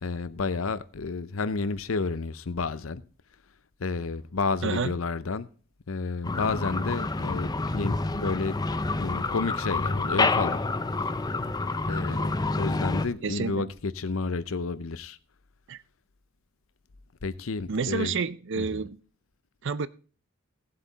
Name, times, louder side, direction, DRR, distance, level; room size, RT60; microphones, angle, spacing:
voice 1, 0.0-3.0 3.8-5.5 5.9-8.6 9.0-10.6 11.8-15.2 17.2-18.1 18.6-18.8, left 4 dB, 90° left, 0.7 m, -31 dB
voice 2, 4.6-4.9 13.2-13.6 15.7-15.8 17.7-19.0 19.6-19.9, right 5 dB, 65° right, 0.6 m, -29 dB
sound 1, 6.2-13.1, left 3 dB, 20° left, 0.5 m, -28 dB
17.0 x 7.7 x 4.1 m
head